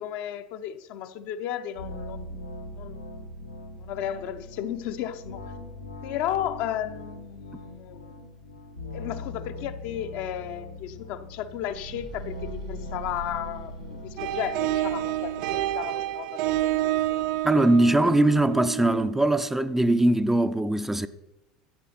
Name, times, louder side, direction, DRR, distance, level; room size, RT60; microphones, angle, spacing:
voice 1, 0.0-3.1 3.8-5.5 6.0-8.2 8.9-17.2, left 10 dB, 55° left, 0.9 m, -34 dB
sound 1, 1.7-15.6, left 1 dB, 90° left, 1.8 m, -41 dB
sound 2, 11.5-14.8, right 3 dB, 70° right, 2.9 m, -43 dB
sound 3, 14.2-19.7, right 14 dB, 55° right, 0.5 m, -29 dB
voice 2, 17.4-21.1, right 1 dB, 5° right, 0.6 m, -21 dB
14.0 x 8.3 x 5.8 m
figure-of-eight pair, 70°, 4 cm